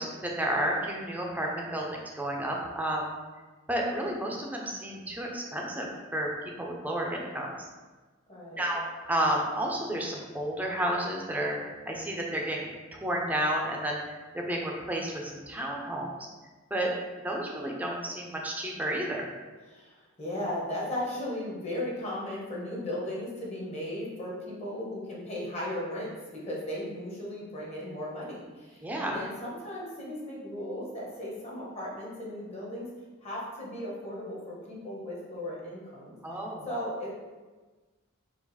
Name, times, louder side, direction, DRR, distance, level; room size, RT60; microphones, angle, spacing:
voice 1, 0.0-3.1 3.7-6.3 6.6-7.7 8.5-11.6 11.9-14.0 14.3-16.2 16.7-16.9 17.2-19.3 28.8-29.2 36.2-36.7, right 1 dB, 10° right, -1 dB, 0.6 m, -31 dB
voice 2, 8.3-8.7 19.7-32.9 33.2-36.2 36.7-37.1, left 1 dB, 30° left, -5 dB, 1.2 m, -36 dB
4.7 x 2.5 x 4.1 m, 1.3 s
head